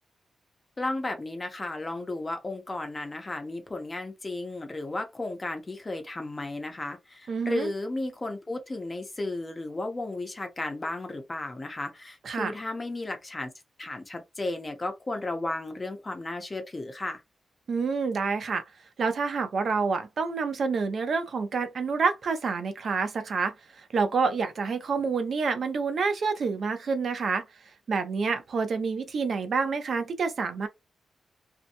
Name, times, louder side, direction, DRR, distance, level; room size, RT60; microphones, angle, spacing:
voice 1, 0.8-13.5 13.8-17.2, left 2 dB, 20° left, 0.6 m, -34 dB
voice 2, 7.3-7.7 12.2-12.5 17.7-18.6 19.0-27.4 27.9-30.7, right 4 dB, 55° right, 0.5 m, -28 dB
2.7 x 2.1 x 2.6 m
wide cardioid pair, 170°, 0 cm